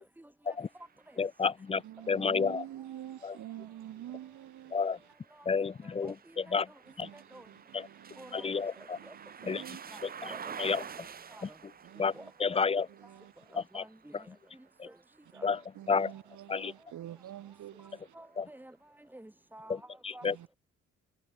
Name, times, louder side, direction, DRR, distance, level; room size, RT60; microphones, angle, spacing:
sound 1, 0.6-16.5 17.1-18.3, right 7 dB, 30° right, 1.1 m, -51 dB
voice 1, 1.2-2.6 3.2-3.4 4.7-5.0 5.5-6.7 7.0-7.1 7.7-7.9 8.3-9.0 9.4-9.6 10.0-10.3 10.6-10.8 11.4-11.5 12.0-12.1 12.4-12.9 13.5-13.8 14.1-14.2 14.8-14.9 15.4-15.6 15.9-16.1 16.5-16.7 18.4-18.5 19.7-20.4, left 5 dB, 20° left, 0.6 m, -31 dB
voice 2, 1.7-4.8 7.0-10.2 11.8-12.3 12.9-13.5 15.3-18.1 20.2-20.6, right 12 dB, 75° right, 6.1 m, -48 dB
voice 3, 6.0-6.6 7.1-7.5 8.2-9.1 9.5-9.7 9.9-10.7 11.3-11.6 12.0-12.3 13.5-14.9 15.3-15.5 18.1-18.8 19.1-19.8 20.1-20.2, right 1 dB, 5° right, 4.8 m, -51 dB
cardioid pair, 165°, 29 cm